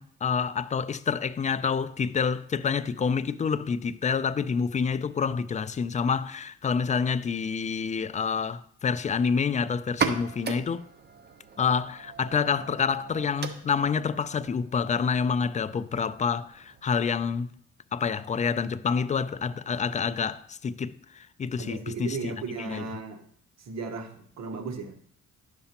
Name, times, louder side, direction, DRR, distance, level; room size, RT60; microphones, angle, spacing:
voice 1, 0.0-10.9 11.6-17.5 17.9-22.8, left 6 dB, 25° left, 0.3 m, -28 dB
sound 1, 9.8-17.3, right 6 dB, 35° right, 0.8 m, -37 dB
voice 2, 21.6-23.2 23.6-25.0, right 5 dB, 60° right, 1.1 m, -36 dB
10.5 x 6.8 x 2.9 m
cardioid pair, 90°, 30 cm